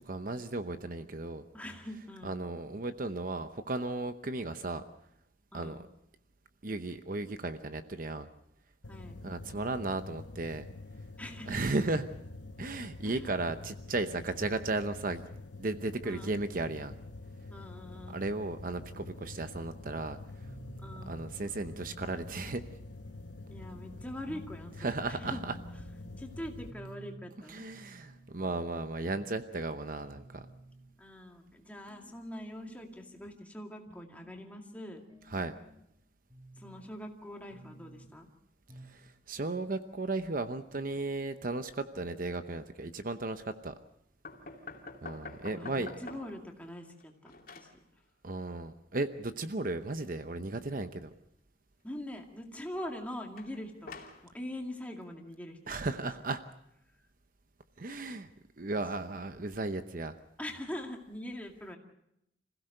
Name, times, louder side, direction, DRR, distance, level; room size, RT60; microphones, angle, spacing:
voice 1, 0.1-1.4 2.2-4.8 5.5-5.9 6.6-8.3 9.2-10.6 11.5-12.0 12.6-15.2 15.6-16.9 18.1-20.2 21.1-22.6 24.8-25.6 27.5-30.5 35.3-35.5 38.8-43.7 45.0-45.9 48.2-51.1 55.7-56.4 57.8-58.3 58.6-60.2, right 2 dB, 50° right, 9 dB, 0.9 m, -35 dB
voice 2, 1.5-2.4 5.5-5.8 8.9-9.2 11.2-11.6 13.1-13.3 16.0-16.4 17.5-18.2 20.8-21.1 23.5-25.5 26.2-27.7 31.0-35.0 36.6-38.3 45.5-47.7 51.8-53.9 54.2-55.8 58.7-58.8 60.4-61.8, left 1 dB, 10° left, 2 dB, 2.3 m, -43 dB
sound 1, 8.8-26.7, left 2 dB, 90° left, 1.1 m, -47 dB
sound 2, 20.4-21.4 21.9-22.6 23.0-23.7 24.3-24.5 24.9-25.0 25.2-26.2 26.7-27.3 27.7-28.7 29.1-29.3 29.7-29.8 30.0-30.9 31.5-32.1 32.6-33.3 33.9-34.4 34.9-35.9 36.3-36.9 37.5-38.1 38.7-39.0 39.3-39.4 39.6-39.7, right 2 dB, 20° right, 4.0 m, -52 dB
sound 3, 44.2-46.5 46.8-47.8 53.4-54.2, left 3 dB, 50° left, 2.8 m, -47 dB
26.5 x 16.0 x 6.6 m, 0.78 s
head